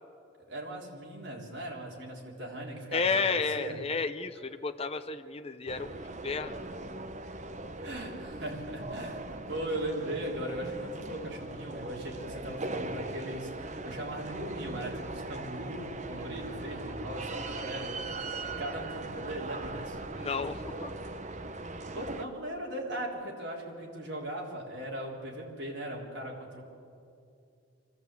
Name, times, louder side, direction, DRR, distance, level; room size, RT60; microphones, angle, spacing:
voice 1, 0.5-3.8 7.8-20.0 21.9-26.6, right 1 dB, 60° right, -3 dB, 3.7 m, -39 dB
voice 2, 2.9-6.6 20.2-20.9, left 4 dB, 30° left, 8 dB, 0.6 m, -32 dB
sound 1, 5.7-22.3, right 2 dB, 35° right, 0.7 m, -39 dB
25.0 x 14.5 x 8.2 m, 2.5 s
head